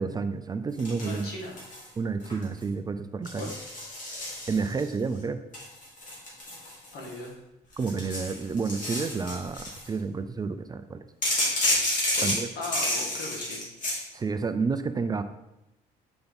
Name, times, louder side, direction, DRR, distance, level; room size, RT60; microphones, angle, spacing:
voice 1, 0.0-1.3 2.0-3.5 4.5-5.4 7.8-11.0 12.2-12.5 14.1-15.2, right 4 dB, 25° right, 9 dB, 0.4 m, -30 dB
sound 1, 0.8-1.9 2.2-2.6 3.2-4.9 5.5-7.3 7.7-9.9 11.2-14.0, left 1 dB, 50° left, 2.6 m, -30 dB
voice 2, 1.0-1.6 3.3-3.5 6.9-7.3 12.1-13.6, left 2 dB, 70° left, -1 dB, 2.0 m, -38 dB
5.9 x 5.1 x 4.0 m, 0.91 s
cardioid pair, 110°, 17 cm